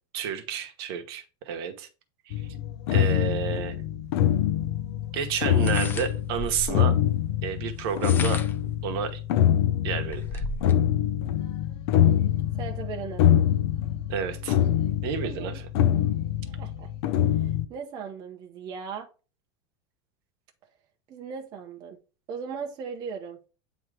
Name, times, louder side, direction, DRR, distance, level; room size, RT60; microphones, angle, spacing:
voice 1, 0.1-1.9 2.3-2.4 2.9-3.7 5.1-6.9 7.4-8.4 8.8-9.2 9.8-10.4 14.1-14.6 15.0-15.5, right 8 dB, 55° right, 1.1 m, -30 dB
sound 1, 2.3-17.7, left 10 dB, 65° left, 0.6 m, -25 dB
sound 2, 5.5-6.9 7.8-8.7 9.3-9.4 9.7-10.8, left 3 dB, 15° left, 0.4 m, -35 dB
voice 2, 12.5-13.3 15.2-15.6 16.5-19.1 21.1-22.0 22.3-23.4, right 6 dB, 25° right, 0.7 m, -38 dB
8.9 x 3.0 x 4.8 m
supercardioid pair, 175°, 15 cm